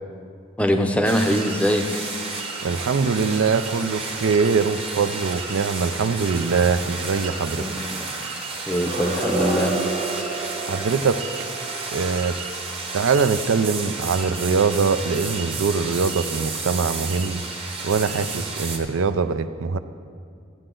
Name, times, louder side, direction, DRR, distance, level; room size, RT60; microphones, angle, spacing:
voice 1, 0.6-2.1 7.6-8.0 8.7-9.7, equal, 5° left, 5 dB, 0.6 m, -23 dB
sound 1, 1.0-18.8, right 4 dB, 30° right, 1.0 m, -32 dB
voice 2, 2.6-7.7 10.7-11.2 11.9-12.4 12.9-17.4 17.8-19.8, right 5 dB, 70° right, 11 dB, 0.4 m, -22 dB
sound 2, 8.7-13.6, right 2 dB, 50° right, 1.8 m, -30 dB
13.5 x 8.8 x 3.8 m, 2.3 s
head